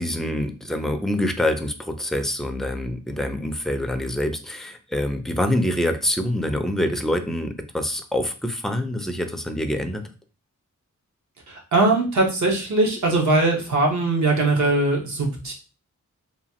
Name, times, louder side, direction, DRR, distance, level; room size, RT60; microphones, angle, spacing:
voice 1, 0.0-10.1, left 1 dB, ahead, 7 dB, 0.3 m, -25 dB
voice 2, 11.5-15.5, right 2 dB, 65° right, 0 dB, 1.0 m, -21 dB
3.0 x 2.3 x 2.8 m, 0.35 s
wide cardioid pair, 85°, 30 cm